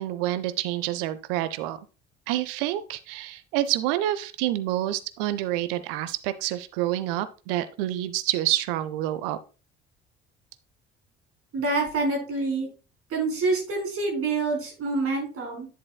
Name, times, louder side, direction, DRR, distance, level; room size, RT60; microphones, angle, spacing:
voice 1, 0.0-1.8 2.3-9.4, right 14 dB, 60° right, 14 dB, 0.7 m, -28 dB
voice 2, 11.5-12.7 13.1-15.7, right 3 dB, 45° right, 1 dB, 4.8 m, -26 dB
10.5 x 6.8 x 2.3 m, 0.33 s
figure-of-eight pair, 50°, 31 cm